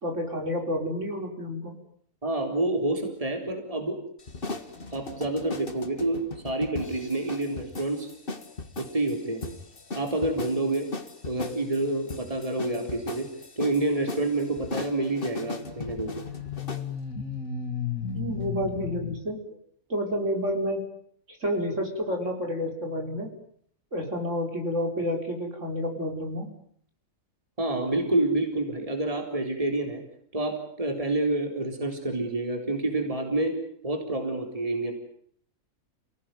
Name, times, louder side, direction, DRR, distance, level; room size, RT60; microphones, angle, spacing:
voice 1, 0.0-1.7 18.1-19.4 19.9-20.9 21.3-23.3 23.9-26.5, equal, 55° right, 3 dB, 5.4 m, -29 dB
voice 2, 2.2-4.0 4.9-8.1 8.8-9.4 10.0-10.9 11.3-13.3 13.6-16.1 27.6-30.0 30.3-33.5 33.8-34.9, right 2 dB, 25° right, 4 dB, 4.1 m, -28 dB
sound 1, 4.2-16.9, left 3 dB, 40° left, 2.0 m, -38 dB
sound 2, 12.5-12.9 15.2-19.2, left 7 dB, 75° left, 2.6 m, -35 dB
29.5 x 18.5 x 9.4 m, 0.64 s
omnidirectional pair, 1.5 m